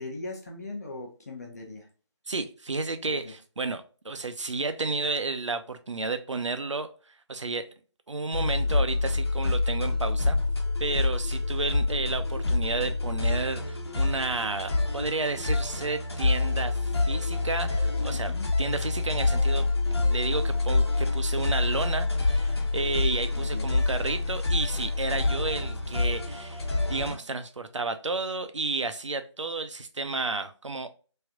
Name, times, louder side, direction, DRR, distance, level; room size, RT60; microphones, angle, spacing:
voice 1, 0.0-1.8 3.1-3.3 18.1-18.5 23.4-23.7, left 2 dB, 35° left, 1 dB, 0.6 m, -39 dB
voice 2, 2.3-6.9 7.3-7.7 8.1-10.4 10.8-30.9, right 3 dB, 75° right, 9 dB, 0.6 m, -32 dB
sound 1, 8.3-27.2, left 3 dB, 60° left, 1.0 m, -27 dB
3.2 x 2.7 x 2.3 m, 0.37 s
figure-of-eight pair, 155°, 16 cm